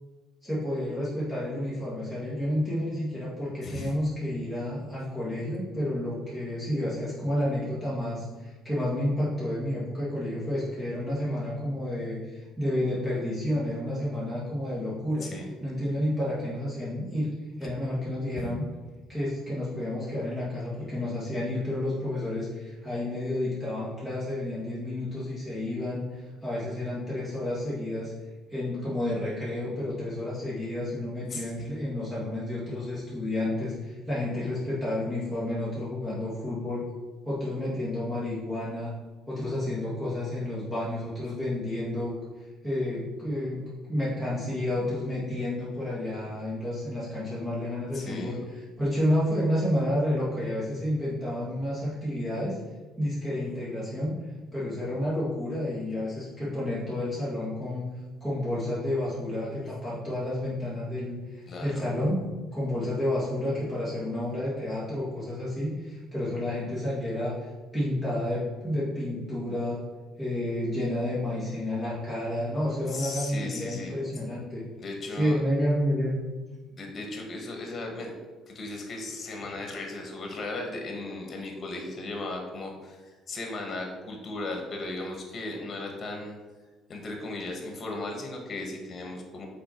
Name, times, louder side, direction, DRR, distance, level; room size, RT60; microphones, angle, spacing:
voice 1, 0.4-15.3 15.6-17.3 17.6-18.6 19.1-28.1 28.5-36.8 37.2-38.9 39.3-42.1 42.6-43.6 43.9-52.6 53.0-54.1 54.5-57.9 58.2-62.2 62.5-67.5 67.7-69.8 70.2-74.6 75.1-76.2, left 1 dB, 10° right, -10 dB, 1.7 m, -30 dB
voice 2, 3.6-3.9 15.2-15.5 18.4-18.5 31.3-31.7 47.9-48.4 61.5-61.9 72.9-73.9 74.8-75.4 76.7-78.1 78.5-86.4 86.9-89.5, left 2 dB, 40° left, 2 dB, 1.4 m, -36 dB
5.5 x 4.2 x 4.4 m, 1.3 s
cardioid pair, 115°, 0 cm